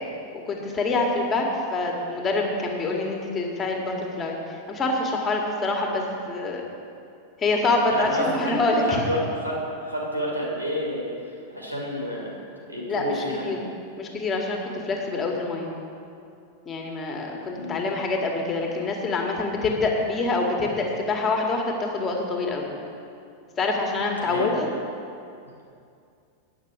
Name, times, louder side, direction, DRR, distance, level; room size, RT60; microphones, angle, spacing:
voice 1, 0.4-6.6 7.4-9.0 12.9-13.6 14.0-15.7 16.6-22.7 23.6-24.7, left 3 dB, 25° left, 1 dB, 1.6 m, -26 dB
voice 2, 7.9-8.2 8.7-11.1 11.5-12.4 12.7-13.6 17.5-17.9 24.2-24.6, equal, 85° right, -2 dB, 2.3 m, -30 dB
8.8 x 6.2 x 7.9 m, 2.5 s
figure-of-eight pair, 90°, 0 cm